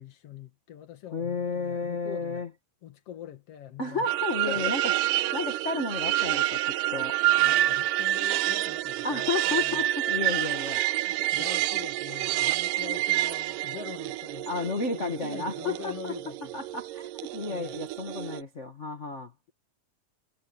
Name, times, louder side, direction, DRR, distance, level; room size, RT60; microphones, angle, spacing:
voice 1, 0.0-2.5 2.8-4.1 4.4-4.8 7.4-9.9 11.1-14.5 14.8-16.6 17.5-17.8, left 10 dB, 50° left, 2.7 m, -43 dB
voice 2, 1.1-2.5 3.8-4.8 5.3-7.2 9.0-10.8 14.5-16.1 16.5-19.3, left 4 dB, 80° left, 0.6 m, -32 dB
sound 1, 4.1-18.4, right 15 dB, 80° right, 2.2 m, -28 dB
omnidirectional pair, 4.0 m